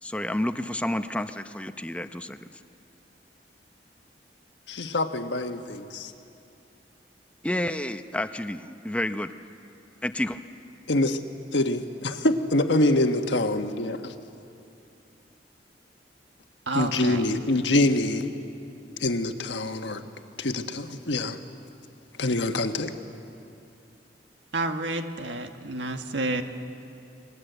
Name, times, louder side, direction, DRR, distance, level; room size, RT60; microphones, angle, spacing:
voice 1, 0.0-2.4 7.4-9.3 10.0-10.4, left 1 dB, 5° left, 9 dB, 0.7 m, -30 dB
voice 2, 4.7-6.1 10.9-11.2 11.5-14.1 16.7-18.4 19.0-20.0 20.4-21.4 22.2-22.9, left 2 dB, 85° left, 6 dB, 1.4 m, -25 dB
voice 3, 16.7-17.4 24.5-26.4, right 2 dB, 85° right, 6 dB, 1.6 m, -30 dB
29.0 x 21.5 x 8.1 m, 2.7 s
head